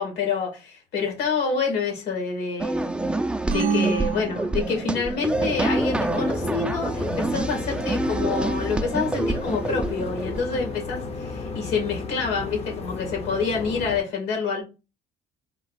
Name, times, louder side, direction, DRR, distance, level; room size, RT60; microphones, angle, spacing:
voice 1, 0.0-2.9 3.5-14.6, left 5 dB, 80° left, 2.1 m, -27 dB
sound 1, 2.6-10.9, right 2 dB, 5° right, 0.4 m, -27 dB
sound 2, 3.5-5.2, right 5 dB, 60° right, 0.5 m, -27 dB
sound 3, 5.3-14.0, left 4 dB, 40° left, 0.7 m, -34 dB
4.4 x 2.4 x 4.0 m
cardioid pair, 110°, 17 cm